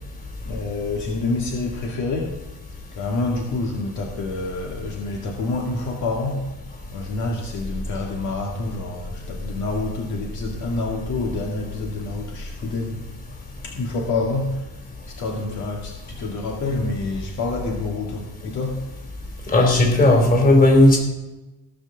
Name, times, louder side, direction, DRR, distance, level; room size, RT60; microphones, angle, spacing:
voice 1, 0.4-2.4 2.9-6.4 6.9-13.0 13.6-14.7 15.1-18.8, left 3 dB, 60° left, 0 dB, 2.1 m, -27 dB
voice 2, 19.5-21.0, left 1 dB, 30° left, 1 dB, 4.3 m, -14 dB
17.0 x 5.8 x 7.1 m, 1.0 s
cardioid pair, 120°, 32 cm